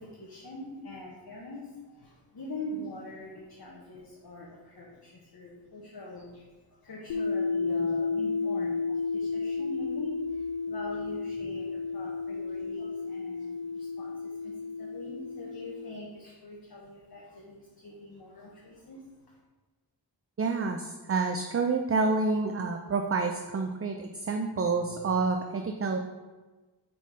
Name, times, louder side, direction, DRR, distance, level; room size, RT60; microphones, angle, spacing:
voice 1, 0.0-19.4, left 1 dB, 60° left, -4 dB, 1.1 m, -44 dB
sound 1, 7.1-15.9, left 4 dB, 90° left, 0.5 m, -32 dB
voice 2, 20.4-26.0, right 4 dB, 35° right, 4 dB, 0.4 m, -28 dB
4.7 x 4.3 x 5.5 m, 1.3 s
wide cardioid pair, 65°, 42 cm